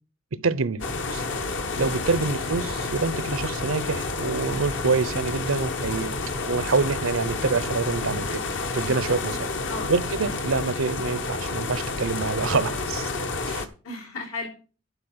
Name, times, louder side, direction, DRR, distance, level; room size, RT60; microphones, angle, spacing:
voice 1, 0.3-0.9 1.1-1.3 1.8-6.2 6.5-8.4 8.7-9.5 9.9-13.1 13.5-13.7, right 4 dB, 85° right, 0.8 m, -26 dB
sound 1, 0.8-13.7, left 3 dB, 65° left, 1.2 m, -30 dB
voice 2, 9.7-10.1 13.8-14.5, left 3 dB, 90° left, 3.6 m, -36 dB
11.5 x 4.5 x 7.8 m
head